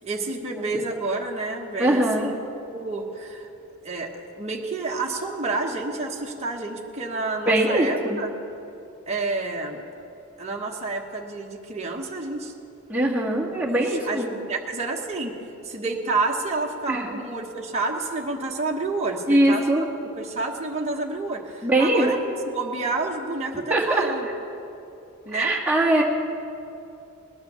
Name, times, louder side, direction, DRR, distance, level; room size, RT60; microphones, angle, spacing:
voice 1, 0.0-2.4 2.7-3.5 3.8-8.3 9.1-9.8 10.4-12.5 13.5-15.3 15.6-19.9 20.2-22.2 22.4-24.3 25.2-25.6, right 3 dB, 30° right, -1 dB, 1.3 m, -29 dB
voice 2, 1.8-2.3 7.4-8.2 12.9-14.3 16.9-17.2 19.3-19.9 21.6-22.1 23.5-24.1 25.3-26.0, right 1 dB, 10° right, -4 dB, 2.1 m, -22 dB
19.5 x 10.0 x 7.0 m, 2.8 s
head